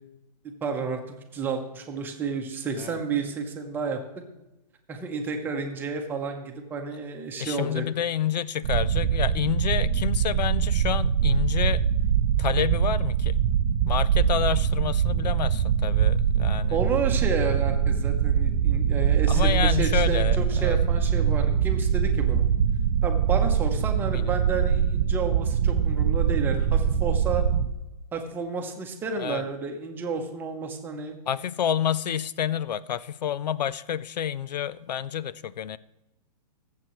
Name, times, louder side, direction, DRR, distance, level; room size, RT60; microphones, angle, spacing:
voice 1, 0.6-4.0 4.9-7.8 16.7-22.4 23.0-27.4 28.1-31.2, right 5 dB, 10° right, 0.8 m, -31 dB
voice 2, 7.4-11.9 12.4-13.4 13.9-16.8 19.3-20.8 24.1-24.3 29.2-29.4 31.3-35.8, left 9 dB, 85° left, 0.5 m, -29 dB
sound 1, 8.6-27.7, right 8 dB, 35° right, 0.5 m, -23 dB
21.0 x 7.5 x 3.1 m
hypercardioid pair, 165°, 21 cm